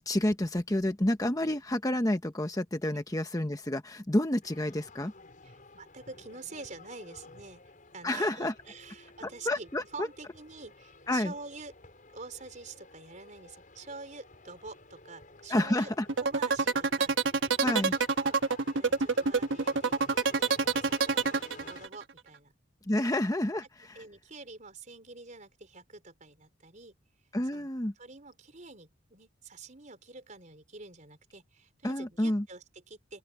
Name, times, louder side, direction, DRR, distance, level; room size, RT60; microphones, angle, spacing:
voice 1, 0.0-5.1 8.0-8.5 9.5-10.1 11.1-11.3 15.5-16.1 17.6-17.9 22.9-24.0 27.3-27.9 31.8-32.5, left 1 dB, 20° left, 1.0 m, -29 dB
sound 1, 4.4-21.9, left 2 dB, 45° left, 6.0 m, -53 dB
voice 2, 5.7-7.6 7.9-11.7 12.1-15.9 16.2-18.4 18.7-19.9 20.2-20.5 20.8-22.5 23.0-23.1 23.9-26.9 27.5-27.7 28.0-33.2, right 3 dB, 40° right, 5.0 m, -47 dB
sound 2, 16.1-22.0, right 4 dB, 80° right, 1.3 m, -27 dB
open air
head